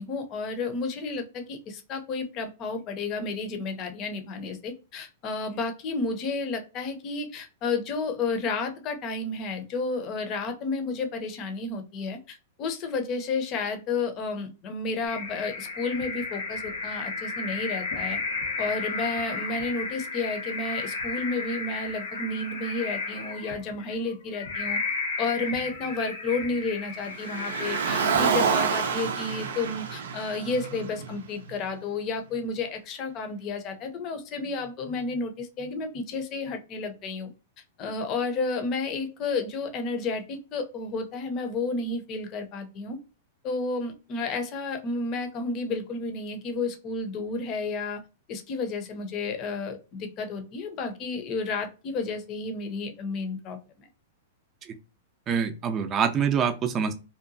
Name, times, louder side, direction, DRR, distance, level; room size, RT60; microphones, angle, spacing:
voice 1, 0.0-18.2 18.6-24.8 25.2-37.3 37.8-43.0 43.4-48.0 48.3-53.9, left 3 dB, 40° left, 6 dB, 0.6 m, -31 dB
sound 1, 15.0-28.6, left 4 dB, 85° left, 1.2 m, -33 dB
Car, 27.2-31.5, right 6 dB, 80° right, 0.4 m, -28 dB
voice 2, 55.3-56.9, right 7 dB, 30° right, 7 dB, 0.5 m, -25 dB
2.8 x 2.2 x 2.6 m, 0.31 s
hypercardioid pair, 125°, 0 cm